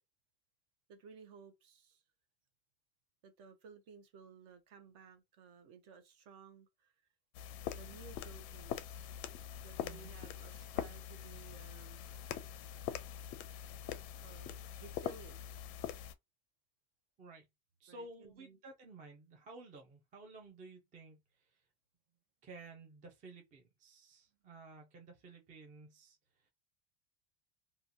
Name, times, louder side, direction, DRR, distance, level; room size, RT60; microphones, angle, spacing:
voice 1, 0.9-2.0 3.2-6.9 7.7-9.1 9.6-12.1 14.2-15.6 17.9-18.6, right 6 dB, 50° right, 0.8 m, -57 dB
sound 1, 7.3-16.1, left 10 dB, 50° left, 0.5 m, -44 dB
voice 2, 9.8-10.1 17.2-17.4 17.8-21.5 22.4-26.5, right 3 dB, 20° right, 0.5 m, -54 dB
2.8 x 2.4 x 2.5 m
supercardioid pair, 160°, 42 cm